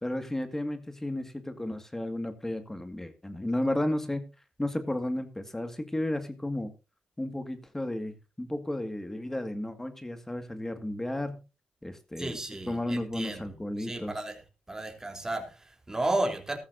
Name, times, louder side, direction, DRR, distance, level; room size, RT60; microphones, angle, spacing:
voice 1, 0.0-4.3 4.6-6.7 7.2-11.4 11.8-12.4 12.7-14.1, left 1 dB, 15° left, 2.0 m, -33 dB
voice 2, 12.2-14.4 14.7-16.6, right 2 dB, 20° right, 3.4 m, -33 dB
15.5 x 13.5 x 2.7 m
cardioid pair, 65°, 3 cm